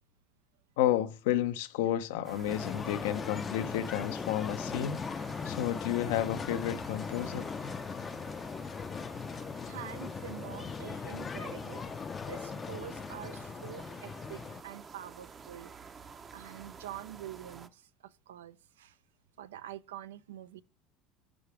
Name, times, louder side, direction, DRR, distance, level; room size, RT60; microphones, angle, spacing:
voice 1, 0.8-5.0 5.4-7.5, left 12 dB, 80° left, 0.5 m, -31 dB
sound 1, 2.2-17.7, right 5 dB, 35° right, 0.6 m, -50 dB
sound 2, 2.5-14.6, left 6 dB, 30° left, 0.4 m, -39 dB
voice 2, 9.6-11.9 12.3-15.7 16.3-19.0 19.4-20.6, right 12 dB, 90° right, 0.3 m, -46 dB
5.0 x 4.8 x 4.6 m
hypercardioid pair, 85°, 0 cm